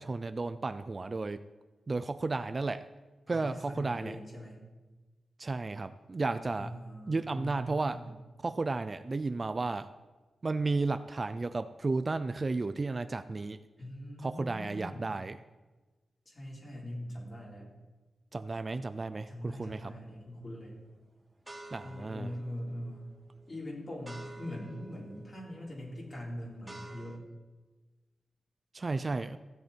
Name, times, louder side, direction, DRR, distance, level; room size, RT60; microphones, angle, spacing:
voice 1, 0.0-1.4 1.9-2.9 3.3-4.2 5.4-6.7 7.1-8.0 8.4-9.9 10.4-13.6 14.2-15.4 18.3-19.9 21.7-22.3 28.7-29.4, right 3 dB, 35° right, 12 dB, 0.4 m, -33 dB
voice 2, 3.3-4.7 6.6-8.1 13.8-15.1 16.3-17.7 19.3-20.7 21.8-23.1 23.5-27.2, equal, 35° left, -4 dB, 4.4 m, -42 dB
sound 1, 19.9-20.3 20.8-27.2, right 2 dB, 15° right, 2.1 m, -52 dB
15.5 x 8.1 x 4.5 m, 1.2 s
cardioid pair, 80°, 0 cm